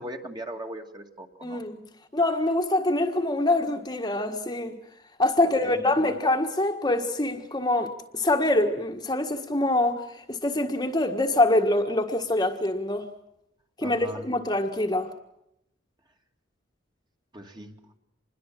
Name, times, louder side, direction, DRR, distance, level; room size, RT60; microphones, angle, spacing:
voice 1, 0.0-1.6 5.4-5.8 13.8-14.3 17.3-17.8, right 1 dB, 20° right, 2.3 m, -39 dB
voice 2, 1.4-1.8 2.1-4.8 5.2-13.1 13.8-15.1, left 2 dB, 20° left, 1.6 m, -25 dB
26.5 x 21.5 x 7.6 m
head